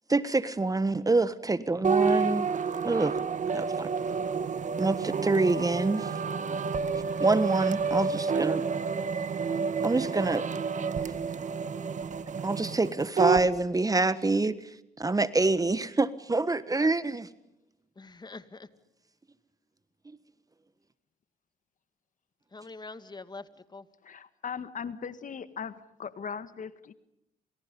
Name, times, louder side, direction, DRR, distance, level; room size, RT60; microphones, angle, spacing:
voice 1, 0.1-2.5 2.8-3.1 3.5-3.9 4.8-6.1 7.2-8.6 9.8-10.4 12.4-14.6 15.0-17.3, right 3 dB, 20° right, 15 dB, 1.4 m, -26 dB
sound 1, 1.8-13.5, right 5 dB, 45° right, 1.9 m, -29 dB
voice 2, 18.0-18.7 22.5-23.9, left 3 dB, 25° left, 12 dB, 2.2 m, -44 dB
voice 3, 24.0-26.9, left 6 dB, 50° left, 13 dB, 1.7 m, -39 dB
29.5 x 27.5 x 5.4 m, 0.82 s
supercardioid pair, 70°, 17 cm